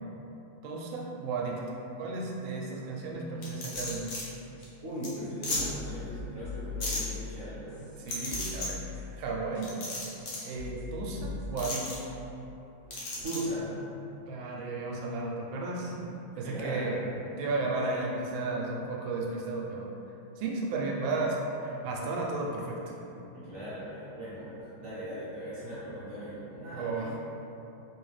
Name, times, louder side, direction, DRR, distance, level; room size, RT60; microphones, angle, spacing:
voice 1, 0.6-4.1 8.0-9.8 10.4-12.1 14.3-17.0 17.4-19.9 20.4-22.8 23.2-23.3 26.7-27.2, right 3 dB, 90° right, -2 dB, 1.4 m, -34 dB
sound 1, 3.4-4.2 4.6-4.7 5.0-5.1 5.4-5.6 6.8-7.0 8.1-8.7 9.6-10.5 11.6-11.9 12.9-13.4, left 2 dB, 55° left, 1.0 m, -34 dB
sound 2, 3.7-4.2 4.6-4.7 5.2-7.4 7.7-9.2 9.5-9.6 10.2-10.3 10.5-11.9, left 5 dB, 50° right, 0.5 m, -41 dB
voice 2, 4.8-7.9 13.2-13.8 16.3-17.1 23.3-27.2, equal, 35° right, -12 dB, 1.2 m, -38 dB
3.6 x 2.8 x 3.2 m, 2.9 s
omnidirectional pair, 2.1 m